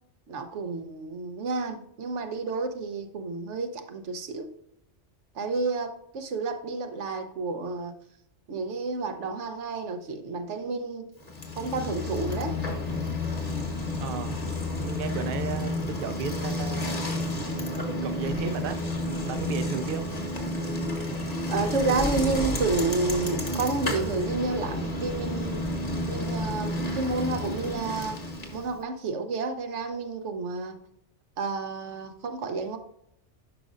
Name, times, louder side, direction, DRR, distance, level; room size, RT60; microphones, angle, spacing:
voice 1, 0.3-4.5 5.3-7.9 8.5-11.1 11.6-12.6 21.5-25.6 26.1-30.8 31.4-32.8, right 3 dB, 80° right, 1.2 m, -30 dB
Bicycle, 11.2-28.8, left 1 dB, 35° left, 1.2 m, -31 dB
voice 2, 14.0-14.4 14.8-16.9 17.9-18.9 19.2-20.1, right 7 dB, 60° right, 0.7 m, -34 dB
10.5 x 5.2 x 2.5 m
omnidirectional pair, 1.2 m